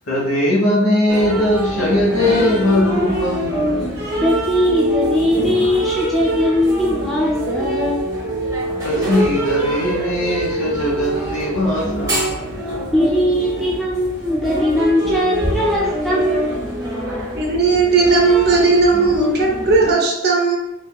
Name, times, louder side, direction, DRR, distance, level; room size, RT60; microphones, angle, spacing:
voice 1, 0.1-3.8 8.8-12.6 12.8-12.9, left 1 dB, 65° left, -4 dB, 1.3 m, -19 dB
sound 1, 1.1-19.9, equal, 15° right, 0.9 m, -24 dB
voice 2, 4.2-8.1 12.9-16.8, equal, ahead, -6 dB, 0.3 m, -20 dB
voice 3, 17.4-20.6, right 4 dB, 50° right, 0 dB, 0.7 m, -16 dB
3.5 x 3.5 x 2.3 m, 0.86 s
head